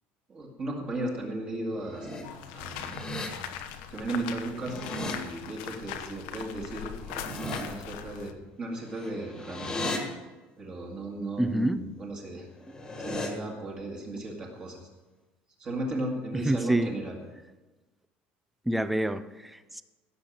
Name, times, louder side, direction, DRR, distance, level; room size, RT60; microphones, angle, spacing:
voice 1, 0.3-2.2 2.5-3.1 3.9-10.0 10.6-12.5 13.0-14.8 15.6-17.2, right 2 dB, 25° right, -1 dB, 2.0 m, -35 dB
sound 1, 1.6-2.2 2.6-3.3 4.4-5.1 6.9-7.6 8.8-10.0 12.5-13.3, left 1 dB, 15° left, 1.6 m, -36 dB
sound 2, 2.2-8.3, left 9 dB, 75° left, 1.0 m, -40 dB
voice 2, 11.4-11.8 16.5-16.9 18.7-19.8, right 1 dB, 5° right, 13 dB, 0.4 m, -27 dB
16.5 x 6.7 x 5.7 m, 1.2 s
cardioid pair, 175°, 4 cm